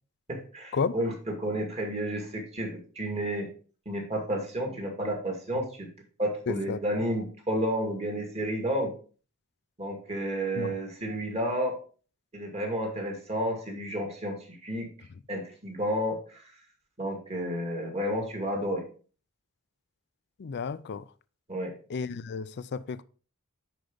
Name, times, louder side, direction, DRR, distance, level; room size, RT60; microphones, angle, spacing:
voice 1, 0.3-3.5 3.9-5.9 6.2-8.9 9.8-11.8 12.3-14.9 15.3-16.4 17.0-18.8 21.5-21.7, equal, 30° right, 2.2 m, -31 dB
voice 2, 6.5-6.8 10.6-10.8 20.4-21.0 21.9-23.0, left 5 dB, 50° left, 0.4 m, -32 dB
10.5 x 4.7 x 3.9 m
head